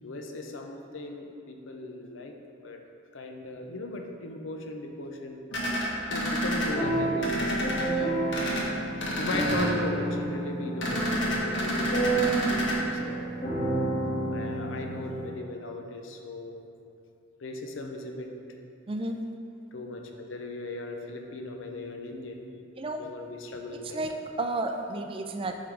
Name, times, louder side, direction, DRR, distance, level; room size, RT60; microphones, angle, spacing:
voice 1, 0.0-2.4 2.6-2.8 3.1-5.4 6.1-8.0 9.2-13.3 14.3-16.6 17.4-18.3 19.7-22.4 23.0-24.0, left 2 dB, 85° left, 3 dB, 0.7 m, -37 dB
sound 1, 5.5-6.7 7.2-7.8 8.3-8.6 9.0-9.7 10.8-12.8, equal, 65° left, 1.2 m, -29 dB
sound 2, 6.7-15.3, right 2 dB, 35° left, 1.5 m, -30 dB
voice 2, 7.8-8.2 18.9-19.2 22.8-23.1 23.8-25.6, right 2 dB, 30° right, 5 dB, 0.4 m, -32 dB
8.4 x 3.7 x 4.6 m, 2.5 s
head